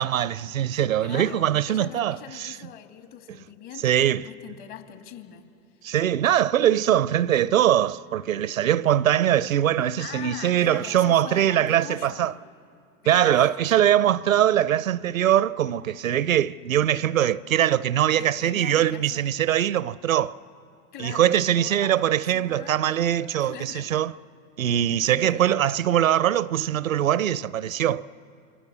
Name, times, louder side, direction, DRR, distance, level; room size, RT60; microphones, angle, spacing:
voice 1, 0.0-2.5 3.8-4.3 5.8-12.3 13.1-20.4 21.0-24.1 24.6-28.0, right 11 dB, 90° right, 0.6 m, -22 dB
voice 2, 1.0-5.9 10.0-12.4 13.0-13.6 18.1-19.3 20.9-23.0 23.4-23.9 24.9-25.7, left 10 dB, 50° left, 2.5 m, -42 dB
27.0 x 24.0 x 7.1 m
hypercardioid pair, 95°, 39 cm